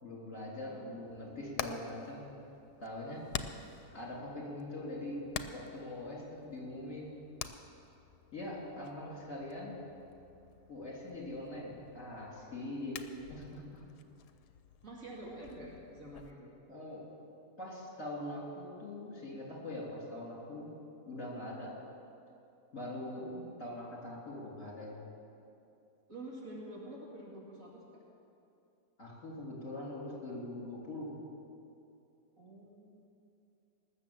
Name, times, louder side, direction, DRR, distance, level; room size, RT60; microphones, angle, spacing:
voice 1, 0.0-2.3 2.8-3.2 3.9-5.2 5.5-7.1 8.3-9.7 10.7-13.8 16.7-17.0 17.6-20.8 21.1-21.7 22.7-23.3 23.6-25.0 29.0-31.1, left 1 dB, 50° left, -4 dB, 3.8 m, -42 dB
voice 2, 0.7-1.4 14.8-16.5 23.2-23.6 26.1-28.0 32.4-33.2, right 1 dB, 55° right, -4 dB, 2.5 m, -48 dB
Hammer, 1.1-16.3, left 8 dB, 85° left, 1.2 m, -48 dB
19.5 x 7.1 x 7.2 m, 2.7 s
omnidirectional pair, 1.7 m